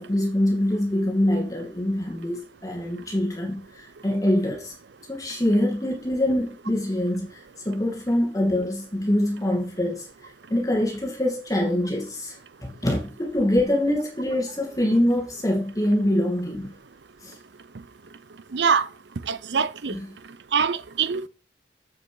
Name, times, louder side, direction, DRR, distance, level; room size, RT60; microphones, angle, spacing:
voice 1, 0.0-4.7 5.1-7.3 7.6-10.1 10.5-16.7 17.2-17.3 19.9-20.1, left 1 dB, 20° left, 2.4 m, -24 dB
voice 2, 18.5-18.8 19.3-19.9 20.5-21.3, right 6 dB, 80° right, 0.6 m, -23 dB
8.0 x 7.0 x 6.2 m
head